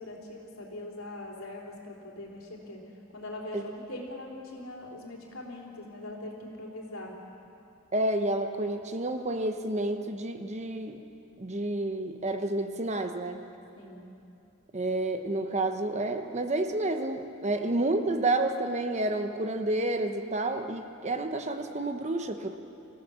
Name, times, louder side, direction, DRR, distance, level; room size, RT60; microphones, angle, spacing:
voice 1, 0.0-2.8 3.1-7.1 13.8-14.0 17.5-17.6, left 1 dB, 75° left, -1 dB, 3.7 m, -42 dB
voice 2, 7.9-11.0 11.4-13.4 14.7-22.6, right 2 dB, 30° right, 6 dB, 1.0 m, -30 dB
25.0 x 15.5 x 7.1 m, 2.7 s
head